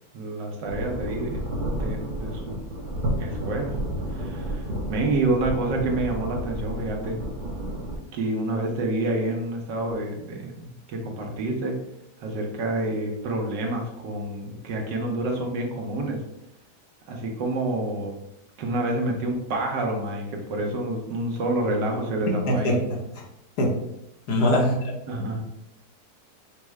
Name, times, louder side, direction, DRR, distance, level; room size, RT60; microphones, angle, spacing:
voice 1, 0.1-1.4 1.7-2.6 3.2-3.8 4.1-7.2 8.1-11.8 12.2-16.2 17.1-18.2 18.6-22.8 24.5-24.7 25.1-25.4, right 2 dB, 80° right, 1 dB, 1.5 m, -28 dB
sound 1, 0.7-8.0, right 1 dB, 40° right, 0.8 m, -31 dB
voice 2, 22.5-22.8 23.6-23.7 24.3-24.7, left 1 dB, 70° left, -1 dB, 1.5 m, -21 dB
5.3 x 2.1 x 4.6 m, 0.81 s
omnidirectional pair, 1.9 m